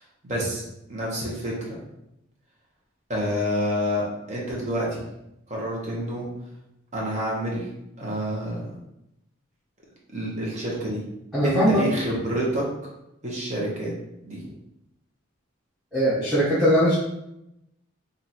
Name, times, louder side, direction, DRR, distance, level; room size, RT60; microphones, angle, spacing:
voice 1, 0.2-0.6 0.9-1.8 3.1-5.0 5.5-6.3 6.9-7.7 8.0-8.7 10.1-11.0 11.4-12.6 13.2-13.9 14.2-14.4, equal, 35° right, -4 dB, 1.0 m, -28 dB
voice 2, 11.3-11.8 15.9-16.9, equal, ahead, -13 dB, 1.0 m, -20 dB
3.0 x 2.5 x 4.2 m, 0.85 s
head